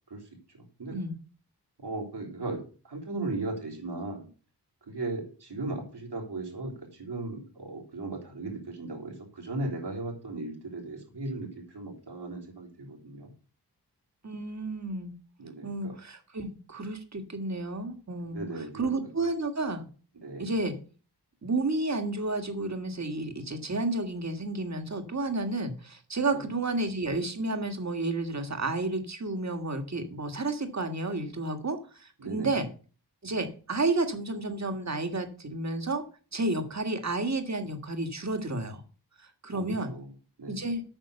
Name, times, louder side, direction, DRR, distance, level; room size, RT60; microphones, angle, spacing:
voice 1, 0.5-1.0 1.8-4.3 4.9-13.3 15.4-15.9 18.3-18.9 20.2-20.5 26.3-26.4 32.2-32.6 39.5-40.1 40.4-40.6, right 2 dB, 75° right, 1 dB, 3.9 m, -37 dB
voice 2, 14.2-15.1 15.6-19.9 20.4-20.7 21.4-32.7 33.2-36.0 36.3-38.8 39.2-39.9 40.5-40.8, right 2 dB, 40° right, 7 dB, 1.8 m, -31 dB
8.9 x 6.4 x 6.7 m, 0.38 s
wide cardioid pair, 85°, 41 cm